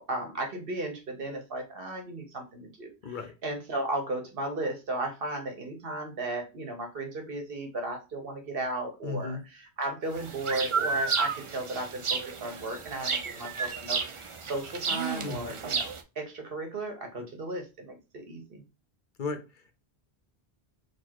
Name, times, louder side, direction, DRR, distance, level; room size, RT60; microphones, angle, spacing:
voice 1, 0.0-2.9 3.4-18.6, right 2 dB, 65° right, 4 dB, 1.0 m, -35 dB
voice 2, 3.0-3.3 9.0-9.4 15.2-15.5 17.2-17.3 19.2-19.7, left 4 dB, 55° left, 8 dB, 0.8 m, -36 dB
sound 1, 10.1-16.0, right 5 dB, 45° right, 0.4 m, -32 dB
4.2 x 2.4 x 4.5 m, 0.28 s
omnidirectional pair, 1.1 m